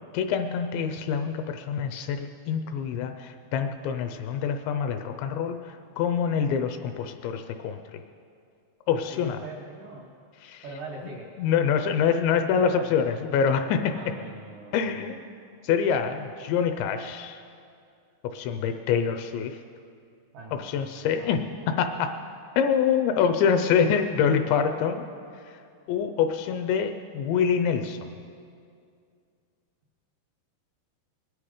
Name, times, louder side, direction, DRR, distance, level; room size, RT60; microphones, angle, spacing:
voice 1, 0.1-7.8 8.9-9.4 10.4-10.6 11.4-13.9 14.7-15.2 15.6-17.4 18.3-19.6 20.5-21.5 21.8-22.1 22.6-25.0 25.9-28.1, left 7 dB, 80° left, 7 dB, 2.7 m, -25 dB
voice 2, 9.1-10.1 10.6-11.3 12.3-12.4 12.7-13.0 13.9-15.1 20.3-21.3, right 2 dB, 80° right, -1 dB, 1.8 m, -42 dB
22.0 x 10.5 x 4.9 m, 2.4 s
omnidirectional pair, 5.5 m